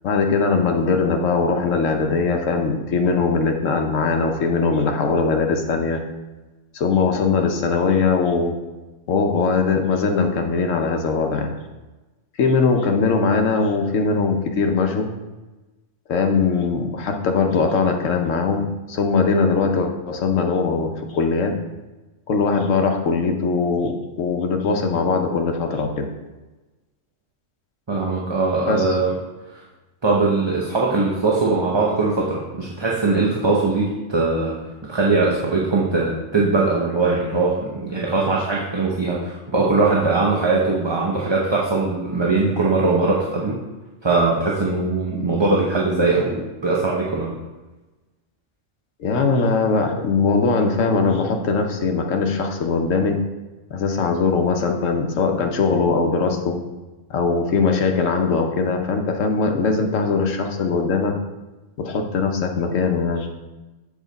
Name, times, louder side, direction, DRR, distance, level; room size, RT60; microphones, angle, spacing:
voice 1, 0.0-6.0 6.7-8.6 9.1-11.5 12.4-15.1 16.1-21.6 22.3-26.1 28.7-29.0 49.0-53.2 53.7-56.6 57.1-61.2 61.8-63.3, left 4 dB, 85° left, 4 dB, 1.2 m, -21 dB
voice 2, 27.9-29.2 29.5-29.6 30.0-34.6 34.8-43.6 44.0-47.3, right 3 dB, 25° right, -4 dB, 0.7 m, -21 dB
7.4 x 5.0 x 4.0 m, 1.1 s
omnidirectional pair, 1.3 m